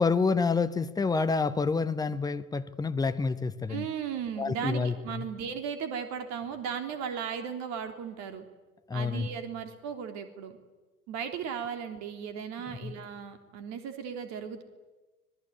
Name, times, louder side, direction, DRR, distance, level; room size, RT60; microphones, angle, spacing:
voice 1, 0.0-3.9 4.4-5.2 8.9-9.3 12.8-12.9, left 4 dB, 10° left, 11 dB, 1.0 m, -28 dB
voice 2, 3.7-8.5 8.9-10.5 11.1-14.6, right 7 dB, 40° right, 7 dB, 3.4 m, -36 dB
25.5 x 20.5 x 9.3 m, 1.2 s
figure-of-eight pair, 90°, 44 cm